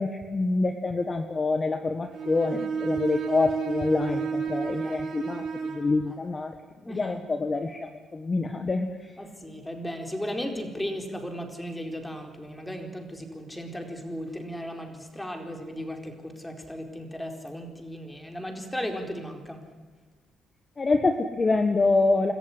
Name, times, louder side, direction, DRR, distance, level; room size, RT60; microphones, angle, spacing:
voice 1, 0.0-6.5 6.9-8.9 20.8-22.3, left 3 dB, 30° left, 7 dB, 1.5 m, -26 dB
Bowed string instrument, 2.1-5.9, right 6 dB, 65° right, 6.4 m, -31 dB
voice 2, 4.6-5.1 6.1-6.2 6.8-7.2 9.2-19.6, equal, 10° left, 4 dB, 4.3 m, -36 dB
26.0 x 14.0 x 9.7 m, 1.4 s
cardioid pair, 90°, 0 cm